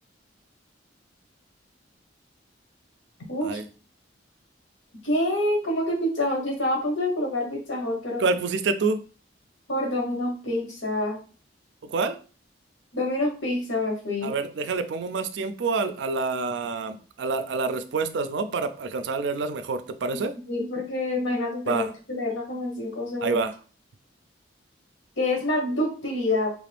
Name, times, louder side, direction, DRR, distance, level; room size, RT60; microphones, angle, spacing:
voice 1, 5.0-8.3 9.7-11.2 12.9-14.3 20.5-23.4 25.2-26.5, left 1 dB, 90° left, 0 dB, 1.1 m, -27 dB
voice 2, 8.2-9.0 11.9-12.2 14.2-20.3 21.7-21.9 23.2-23.5, right 4 dB, 65° right, 10 dB, 0.4 m, -27 dB
3.5 x 2.5 x 3.3 m, 0.38 s
head